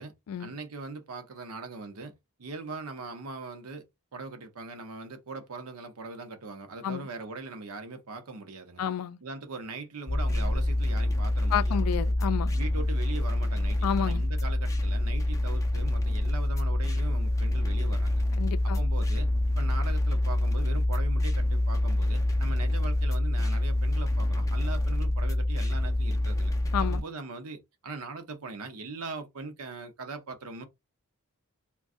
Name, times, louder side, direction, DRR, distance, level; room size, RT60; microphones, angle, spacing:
voice 1, 0.4-2.1 2.4-3.8 4.1-8.8 9.2-11.8 12.5-18.2 18.6-19.3 19.6-26.5 26.8-30.6, right 3 dB, 80° right, 0.7 m, -40 dB
voice 2, 8.8-9.2 11.5-12.5 13.8-14.2 18.4-18.8 26.7-27.0, left 8 dB, 85° left, 0.3 m, -30 dB
sound 1, 10.1-27.0, left 1 dB, 15° left, 0.4 m, -26 dB
2.5 x 2.3 x 3.6 m
head